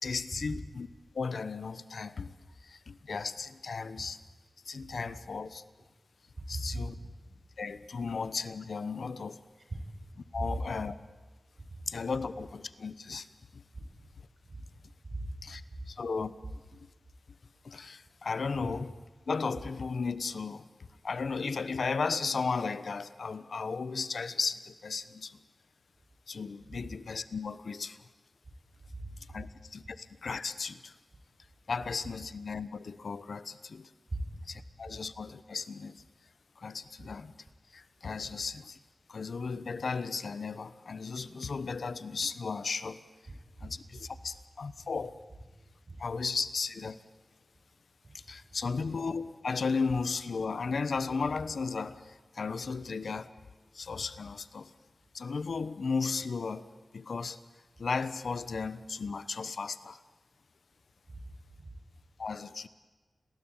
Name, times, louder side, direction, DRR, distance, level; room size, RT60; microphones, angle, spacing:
voice 1, 0.0-0.9 1.1-2.3 2.6-4.2 4.6-5.6 6.5-7.0 7.6-9.4 10.3-10.9 11.9-13.3 13.5-13.6 15.4-15.6 15.9-16.3 16.7-16.9 17.6-19.0 19.3-20.7 21.0-25.4 26.3-28.0 29.3-30.9 31.7-33.9 34.5-36.0 36.6-37.3 37.7-38.8 39.1-43.0 43.6-45.2 46.0-47.0 48.1-53.3 53.7-54.7 55.1-57.4 57.8-60.0 62.2-62.7, left 4 dB, 75° left, 14 dB, 1.1 m, -35 dB
voice 2, 6.5-6.8 10.3-10.5 11.7-11.8 14.5-14.6 15.0-15.8 28.9-29.4 34.1-34.3 43.6-43.7 45.9-46.0 48.0-48.2 61.1-61.2 61.6-61.7, right 2 dB, 45° right, 2 dB, 7.1 m, -39 dB
29.0 x 20.0 x 9.0 m, 1.3 s
wide cardioid pair, 100°, 0 cm